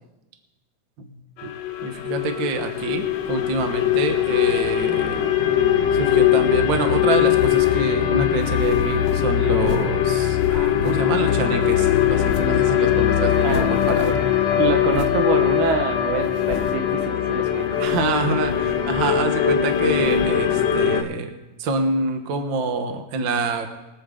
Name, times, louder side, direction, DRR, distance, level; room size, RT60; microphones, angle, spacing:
sound 1, 1.4-21.0, left 10 dB, 75° left, 1.9 m, -21 dB
voice 1, 1.8-5.3 5.9-14.2 17.8-21.3 21.6-23.7, right 3 dB, 50° right, 6 dB, 1.5 m, -26 dB
sound 2, 7.3-7.8 8.4-10.0 10.4-11.3 11.7-12.7 12.9-13.0 13.3-14.4 14.9-15.2 15.7-15.8 16.3-16.9 17.7-18.2 18.4-19.3 19.7-20.5, left 10 dB, 90° left, 1.4 m, -34 dB
voice 2, 14.6-17.8, right 6 dB, 90° right, 5 dB, 2.6 m, -26 dB
23.0 x 8.5 x 3.8 m, 1.1 s
omnidirectional pair, 3.4 m